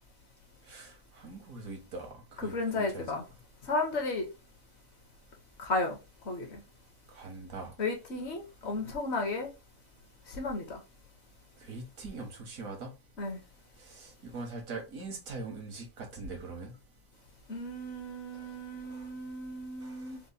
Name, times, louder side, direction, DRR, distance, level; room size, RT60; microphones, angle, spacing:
voice 1, 0.7-3.0 7.1-7.7 11.6-12.9 13.9-16.7 19.8-20.0, right 3 dB, 85° right, 1.6 m, -42 dB
voice 2, 2.4-3.2 3.6-4.3 5.6-6.0 6.3-6.6 7.8-9.5 10.3-10.8 13.2-13.4 17.5-20.2, left 2 dB, 60° left, 1.1 m, -34 dB
4.3 x 2.1 x 2.6 m
omnidirectional pair, 1.4 m